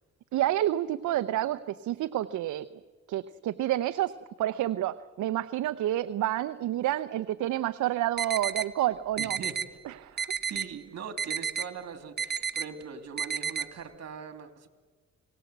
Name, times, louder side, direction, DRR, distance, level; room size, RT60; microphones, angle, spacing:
voice 1, 0.3-2.7 3.1-4.1 4.4-9.4 9.9-10.3, right 13 dB, 75° right, 11 dB, 0.8 m, -29 dB
sound 1, 8.2-8.7 9.2-9.7 10.2-10.7 11.2-11.7 12.2-12.7 13.2-13.7, right 7 dB, 35° right, 1.3 m, -31 dB
voice 2, 9.2-9.6 10.5-14.7, right 7 dB, 60° right, 8 dB, 2.8 m, -41 dB
29.5 x 18.5 x 8.1 m, 1.4 s
cardioid pair, 90°, 30 cm